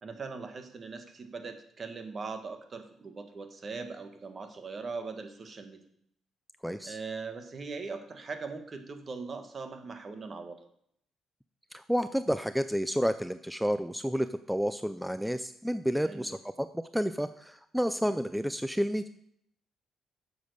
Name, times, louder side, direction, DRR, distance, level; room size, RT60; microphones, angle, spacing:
voice 1, 0.0-5.8 6.8-10.6 16.0-16.3, right 4 dB, 40° right, 7 dB, 1.5 m, -40 dB
voice 2, 6.6-7.0 11.7-19.1, equal, ahead, 11 dB, 0.4 m, -30 dB
9.2 x 7.0 x 6.6 m, 0.72 s
cardioid pair, 90°, 0 cm